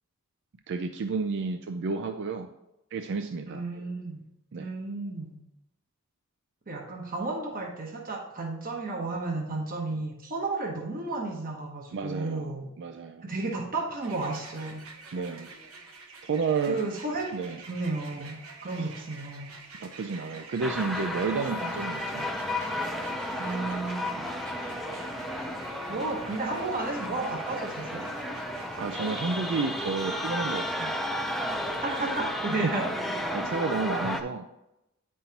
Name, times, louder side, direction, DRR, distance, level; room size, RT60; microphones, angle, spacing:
voice 1, 0.7-2.5 2.9-3.6 4.5-4.7 11.9-12.5 12.8-13.3 15.1-15.5 16.2-16.8 17.3-17.6 18.8-18.9 19.8-22.3 28.8-31.0 32.6-32.7 33.3-34.4, right 4 dB, 60° right, 7 dB, 0.4 m, -31 dB
voice 2, 3.5-4.2 4.6-5.3 6.7-12.7 13.2-14.8 16.7-17.3 17.7-19.6 23.4-24.3 25.9-28.0 31.8-32.9, right 3 dB, 45° right, 1 dB, 1.0 m, -33 dB
sound 1, 14.0-32.2, right 3 dB, 90° right, 1.1 m, -47 dB
sound 2, 20.6-34.2, left 1 dB, ahead, 0.5 m, -33 dB
8.9 x 5.5 x 2.9 m, 0.89 s
head